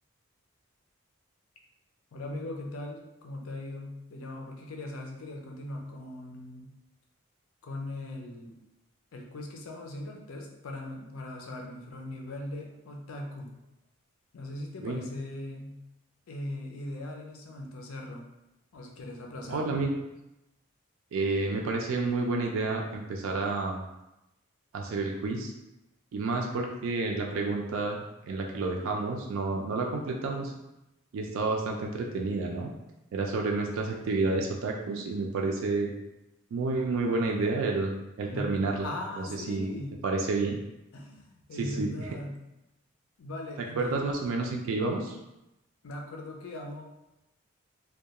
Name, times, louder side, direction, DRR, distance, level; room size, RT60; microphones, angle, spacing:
voice 1, 2.1-6.7 7.6-8.6 9.1-13.6 14.3-15.8 16.3-18.2 18.7-19.8 38.3-38.5 38.8-39.9 40.9-42.4 43.2-44.0 45.8-46.8, left 1 dB, 90° left, 1 dB, 0.5 m, -39 dB
voice 2, 19.5-19.9 21.1-23.8 24.7-25.5 26.1-30.5 31.1-32.7 33.1-35.9 36.5-38.9 39.5-39.7 40.0-40.6 41.6-41.9 43.8-45.2, right 3 dB, 75° right, 1 dB, 0.3 m, -30 dB
2.2 x 2.2 x 2.8 m, 0.92 s
head